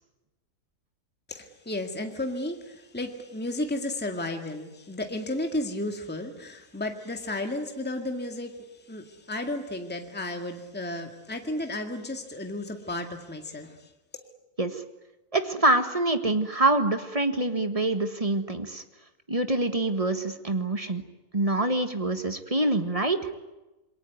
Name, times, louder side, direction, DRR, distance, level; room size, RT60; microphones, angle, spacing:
voice 1, 1.3-13.9, left 1 dB, 5° left, 5 dB, 2.0 m, -33 dB
voice 2, 15.3-18.8 19.3-21.0 21.3-23.3, right 2 dB, 25° right, 8 dB, 1.6 m, -25 dB
28.0 x 22.0 x 9.4 m, 1.1 s
omnidirectional pair, 1.6 m